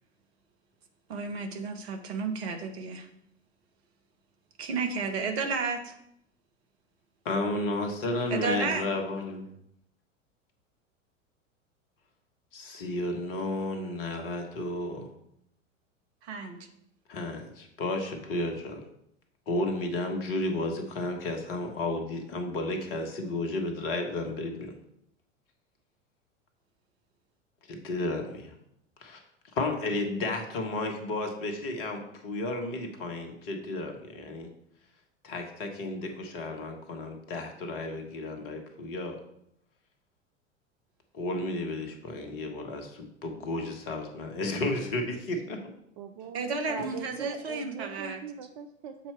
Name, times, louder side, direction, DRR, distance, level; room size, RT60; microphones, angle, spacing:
voice 1, 1.1-3.1 4.6-5.9 8.3-8.8 16.2-16.6 46.3-48.2, right 4 dB, 55° right, 5 dB, 1.1 m, -32 dB
voice 2, 7.2-9.5 12.5-15.1 17.1-18.8 19.5-24.8 27.7-28.5 29.0-29.2 29.5-34.5 35.2-39.2 41.1-45.6, left 2 dB, 45° left, 4 dB, 1.3 m, -32 dB
voice 3, 46.0-49.1, right 7 dB, 35° right, 6 dB, 0.5 m, -40 dB
7.3 x 4.4 x 4.4 m, 0.75 s
figure-of-eight pair, 85°, 38 cm